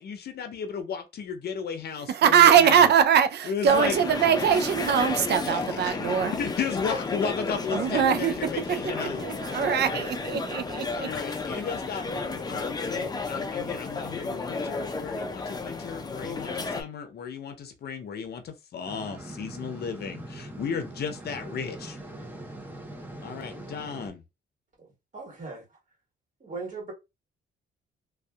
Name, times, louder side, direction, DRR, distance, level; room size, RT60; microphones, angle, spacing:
voice 1, 0.0-2.9 3.4-4.0 5.4-10.1 10.9-22.0 23.2-24.2, left 6 dB, 55° left, 0.7 m, -35 dB
voice 2, 2.1-6.3 7.7-8.3 9.0-11.1, right 8 dB, 60° right, 0.4 m, -22 dB
sound 1, 3.7-16.8, left 3 dB, 20° left, 0.5 m, -32 dB
sound 2, 18.9-24.1, right 1 dB, 10° right, 0.7 m, -42 dB
voice 3, 24.8-25.7 26.4-26.9, right 4 dB, 40° right, 1.5 m, -39 dB
2.6 x 2.3 x 2.3 m
cardioid pair, 90°, 20 cm